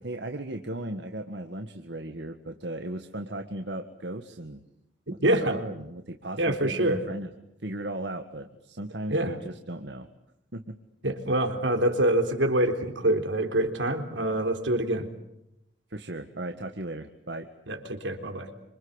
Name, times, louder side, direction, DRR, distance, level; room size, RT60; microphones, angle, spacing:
voice 1, 0.0-4.6 5.3-7.3 7.6-10.1 10.5-10.8 15.9-17.5, right 1 dB, 70° right, 6 dB, 1.7 m, -36 dB
voice 2, 5.1-5.6 6.4-7.0 9.1-9.3 11.0-15.1 17.7-18.5, right 1 dB, 85° right, 6 dB, 3.8 m, -25 dB
27.5 x 26.5 x 8.1 m, 0.82 s
head